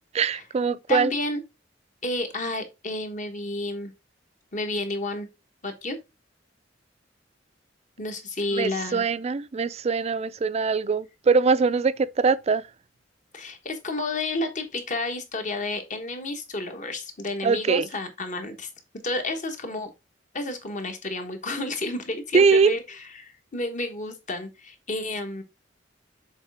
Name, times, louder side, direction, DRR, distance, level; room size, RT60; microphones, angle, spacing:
voice 1, 0.1-1.1 8.5-12.6 17.4-17.9 22.3-22.7, right 5 dB, 35° right, 0.4 m, -22 dB
voice 2, 0.9-1.4 2.0-3.9 4.5-5.3 5.6-6.0 8.0-9.0 13.3-18.7 19.0-19.9 20.3-25.4, left 2 dB, 45° left, 1.2 m, -31 dB
7.2 x 4.1 x 3.4 m
head